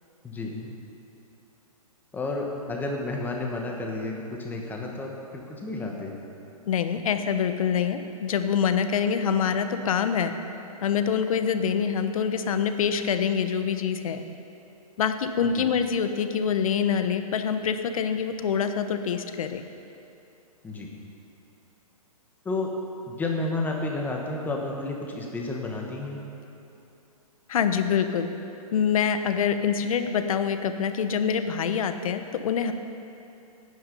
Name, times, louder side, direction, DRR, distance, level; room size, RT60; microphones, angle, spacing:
voice 1, 0.2-0.7 2.1-6.2 15.4-15.7 20.6-20.9 22.4-22.7 23.1-26.2, left 2 dB, 10° left, 0 dB, 1.5 m, -31 dB
voice 2, 6.7-10.3 10.8-14.2 15.0-19.6 27.5-28.3 28.7-32.7, left 7 dB, 65° left, 8 dB, 1.0 m, -25 dB
16.0 x 9.6 x 5.5 m, 2.8 s
hypercardioid pair, 145°, 19 cm